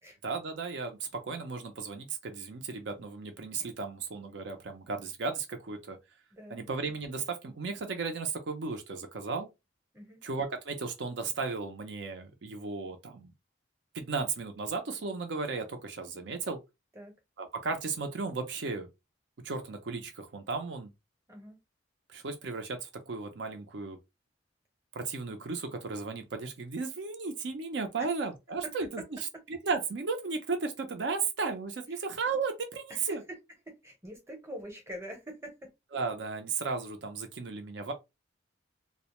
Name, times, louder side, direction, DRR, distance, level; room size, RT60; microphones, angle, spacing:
voice 1, 0.2-6.0 6.5-9.5 10.2-13.3 13.9-16.6 17.4-18.9 19.4-20.9 22.1-24.0 24.9-29.0 29.5-33.2 35.9-37.9, right 4 dB, 65° right, 0.5 m, -35 dB
voice 2, 6.3-6.6 9.9-10.2 16.9-17.1 21.3-21.6 28.0-28.1 28.6-28.7 31.9-32.0 32.9-33.4 33.7-35.7, equal, 15° right, 0.7 m, -44 dB
2.3 x 2.1 x 2.9 m
head